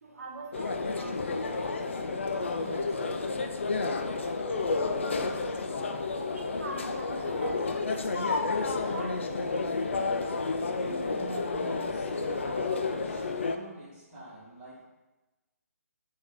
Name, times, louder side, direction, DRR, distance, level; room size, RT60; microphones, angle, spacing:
voice 1, 0.0-1.7 6.3-8.5 8.9-10.0, right 2 dB, 60° right, 1 dB, 0.8 m, -43 dB
sound 1, 0.5-13.6, left 3 dB, 50° left, 0.3 m, -31 dB
voice 2, 2.5-5.7 10.7-14.8, right 1 dB, 10° right, -12 dB, 1.4 m, -46 dB
4.4 x 2.7 x 3.7 m, 1.1 s
figure-of-eight pair, 140°, 9 cm